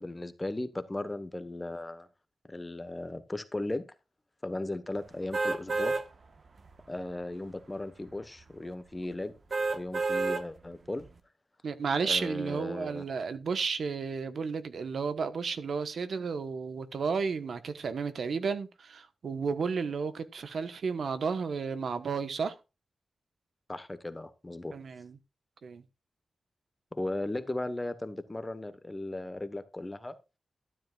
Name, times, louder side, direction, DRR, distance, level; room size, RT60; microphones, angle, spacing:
voice 1, 0.0-2.1 2.4-3.8 4.4-6.0 6.9-9.3 9.7-11.0 12.0-13.0 23.7-24.7 26.9-30.1, left 2 dB, 20° left, 1.2 m, -36 dB
sound 1, 5.3-6.0 6.6-6.7 9.5-10.4 11.0-11.1, right 3 dB, 50° right, 1.3 m, -29 dB
voice 2, 11.6-22.6 24.7-25.2 25.6-25.8, right 5 dB, 75° right, 1.1 m, -32 dB
12.5 x 10.5 x 2.4 m
wide cardioid pair, 125°, 0 cm